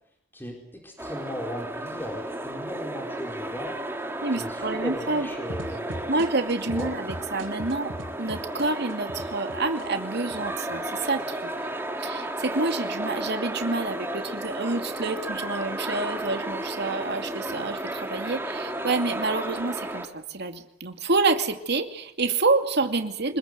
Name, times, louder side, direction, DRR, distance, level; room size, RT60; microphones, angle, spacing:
voice 1, 0.3-3.8 4.3-6.1 6.7-6.9, equal, 10° left, 1 dB, 4.4 m, -37 dB
sound 1, 1.0-20.1, right 1 dB, 10° right, 2.5 m, -33 dB
voice 2, 4.2-5.3 6.1-7.9 8.2-11.7 12.0-23.4, right 3 dB, 55° right, 6 dB, 2.5 m, -28 dB
sound 2, 5.5-9.9 10.3-11.0, right 1 dB, 75° right, 4.2 m, -38 dB
25.5 x 21.5 x 8.0 m, 0.75 s
head